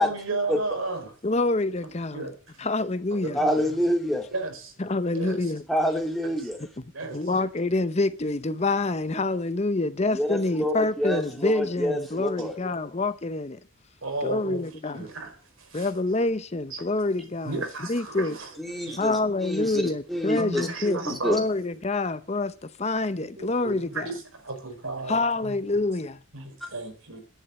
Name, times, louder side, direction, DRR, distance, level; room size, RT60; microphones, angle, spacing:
voice 1, 0.0-1.1 1.8-2.3 3.2-3.7 4.3-4.7 5.1-5.5 6.4-6.5 6.9-7.2 14.0-14.6 14.9-15.9 16.7-16.8 17.4-18.5 18.9-19.0 20.4-21.4 23.2-25.5 26.3-27.2, right 3 dB, 90° right, 4.7 m, -34 dB
voice 2, 1.2-2.3 2.6-3.4 4.8-5.6 7.1-13.6 14.2-15.1 15.7-17.6 17.9-18.4 19.0-24.1 25.1-26.2, left 2 dB, 30° left, 0.8 m, -27 dB
voice 3, 3.3-4.3 5.7-6.6 10.1-12.5 18.6-21.4, equal, ahead, 2.8 m, -27 dB
11.0 x 11.0 x 7.6 m
head